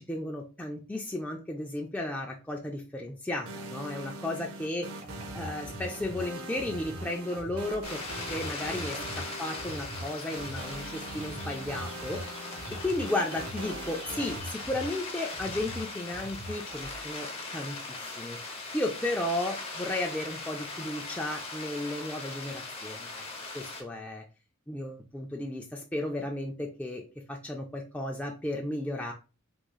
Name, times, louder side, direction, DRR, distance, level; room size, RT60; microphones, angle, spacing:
voice 1, 0.0-4.9 5.3-8.0 8.3-9.0 9.4-12.3 12.8-23.1 23.5-24.2 24.7-27.0 27.3-29.1, left 1 dB, 5° left, 0 dB, 0.3 m, -34 dB
sound 1, 3.5-14.4, right 2 dB, 75° right, 0.6 m, -42 dB
sound 2, 5.0-15.0 15.3-17.1, right 1 dB, 35° right, 0.9 m, -43 dB
sound 3, 7.8-23.8, left 3 dB, 25° left, 0.8 m, -40 dB
3.5 x 3.1 x 2.3 m, 0.32 s
head